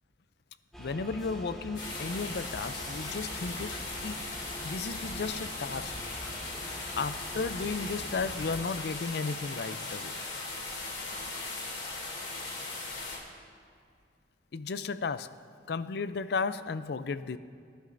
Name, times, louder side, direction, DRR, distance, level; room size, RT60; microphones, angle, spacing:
sound 1, 0.7-8.7, equal, ahead, 1.5 m, -45 dB
voice 1, 0.8-4.3 4.6-5.9 7.0-10.2 14.5-15.4 15.7-17.4, left 4 dB, 60° left, 13 dB, 0.4 m, -34 dB
sound 2, 1.7-13.2, left 3 dB, 85° left, 2.9 m, -38 dB
24.0 x 11.5 x 2.6 m, 2.2 s
head